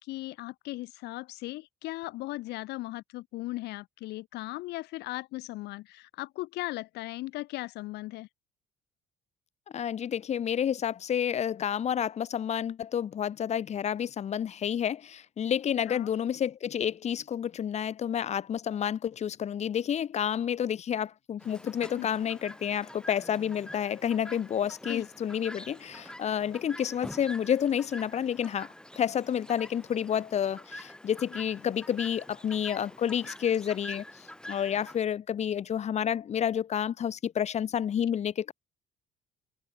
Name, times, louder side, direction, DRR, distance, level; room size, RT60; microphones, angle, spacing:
voice 1, 0.0-8.3 15.7-16.1 22.0-22.1 24.9-25.0, left 19 dB, 80° left, 0.6 m, -37 dB
voice 2, 9.7-28.7 29.0-38.5, left 9 dB, 40° left, 0.9 m, -30 dB
Chirp tweet, 21.4-35.0, left 1 dB, 5° left, 6.6 m, -46 dB
open air
cardioid pair, 110°, 17 cm